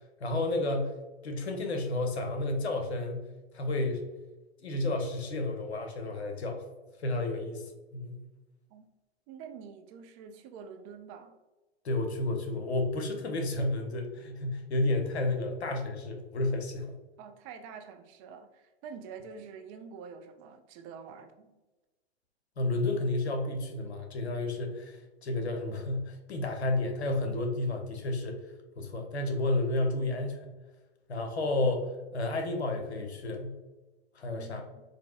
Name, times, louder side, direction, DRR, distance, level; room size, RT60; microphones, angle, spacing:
voice 1, 0.2-1.0 1.2-3.3 3.5-4.0 4.6-6.6 7.0-7.7 7.9-8.2 11.8-16.9 22.6-28.4 28.8-30.5 31.1-33.5 34.2-34.6, left 2 dB, 85° left, 4 dB, 0.7 m, -31 dB
voice 2, 9.3-11.4 17.2-21.6 34.3-34.8, right 6 dB, 35° right, 6 dB, 0.4 m, -47 dB
4.2 x 2.5 x 2.3 m, 1.1 s
hypercardioid pair, 105°, 32 cm